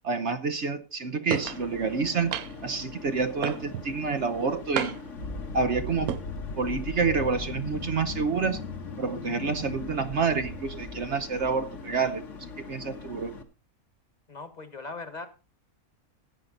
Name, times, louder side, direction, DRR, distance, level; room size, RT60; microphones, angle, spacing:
voice 1, 0.0-2.4 2.6-5.0 5.5-6.2 6.6-8.6 9.0-12.2 12.7-13.4, right 5 dB, 55° right, 10 dB, 1.0 m, -28 dB
sound 1, 1.3-1.6 2.3-2.7 3.4-3.9 4.8-5.2 5.9-6.2, right 11 dB, 75° right, 1.2 m, -31 dB
sound 2, 1.5-13.4, left 5 dB, 55° left, 1.7 m, -43 dB
sound 3, 5.2-12.0, left 3 dB, 85° left, 2.2 m, -38 dB
voice 2, 14.3-15.3, left 3 dB, 30° left, 10 dB, 1.6 m, -39 dB
14.5 x 9.4 x 4.0 m, 0.31 s
omnidirectional pair, 1.6 m